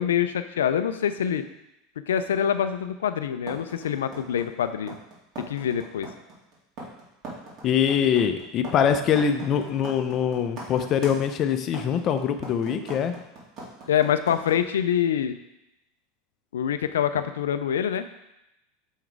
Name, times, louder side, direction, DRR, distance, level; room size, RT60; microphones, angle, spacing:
voice 1, 0.0-1.4 2.1-4.9 5.4-6.1 13.9-15.3 16.5-18.1, left 9 dB, 90° left, 10 dB, 0.4 m, -25 dB
sound 1, 3.5-14.5, right 2 dB, 50° right, 2.4 m, -39 dB
voice 2, 7.6-13.1, left 8 dB, 45° left, 8 dB, 0.6 m, -23 dB
6.3 x 3.9 x 4.6 m, 0.89 s
hypercardioid pair, 100°, 0 cm